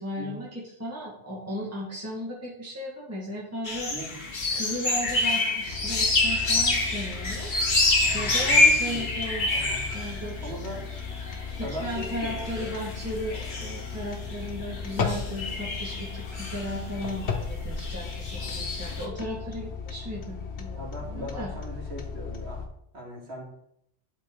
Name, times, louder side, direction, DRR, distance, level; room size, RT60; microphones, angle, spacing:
voice 1, 0.0-3.9 4.5-7.5 7.8-9.5 9.9-10.5 11.6-20.8 21.1-21.5, equal, 15° right, -6 dB, 1.6 m, -36 dB
sound 1, 3.7-19.1, left 2 dB, 50° left, 1.2 m, -27 dB
sound 2, 5.7-22.7, left 5 dB, 85° left, 1.2 m, -36 dB
voice 2, 8.0-9.9 10.4-10.9 11.6-12.8 18.4-18.7 20.7-22.6 22.9-23.4, right 1 dB, 75° right, -3 dB, 2.4 m, -39 dB
11.0 x 4.2 x 3.7 m, 0.76 s
omnidirectional pair, 1.1 m